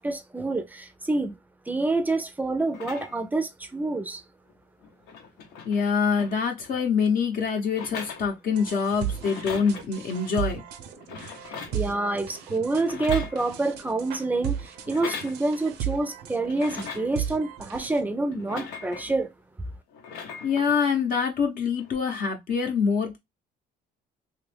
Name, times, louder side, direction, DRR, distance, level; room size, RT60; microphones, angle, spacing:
voice 1, 0.0-1.4 1.7-4.2 11.7-19.3, right 2 dB, 10° right, 0.5 m, -27 dB
sound 1, 2.7-3.4 4.5-4.6 4.8-6.8 7.7-8.7 9.1-9.9 10.9-11.9 12.7-13.8 14.8-15.4 16.4-17.2 18.3-19.2 19.9-20.8 21.8-21.9, left 6 dB, 90° left, 0.9 m, -39 dB
voice 2, 5.6-10.6 20.4-23.2, left 6 dB, 55° left, 0.9 m, -25 dB
sound 2, 8.5-18.0, right 10 dB, 85° right, 0.6 m, -35 dB
3.0 x 2.5 x 3.2 m
cardioid pair, 110°, 17 cm